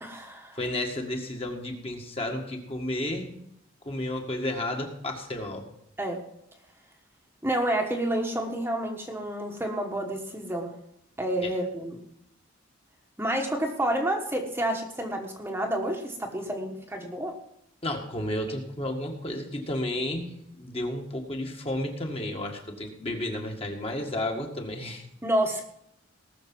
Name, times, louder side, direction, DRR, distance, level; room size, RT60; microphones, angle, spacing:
voice 1, 0.0-0.6 6.0-6.2 7.4-10.7 11.2-12.0 13.2-17.4 25.2-25.6, right 1 dB, 10° right, 2 dB, 1.3 m, -29 dB
voice 2, 0.5-3.3 3.8-5.6 11.4-11.5 17.8-25.1, left 1 dB, 30° left, 2 dB, 1.8 m, -32 dB
19.0 x 6.6 x 6.1 m, 0.76 s
head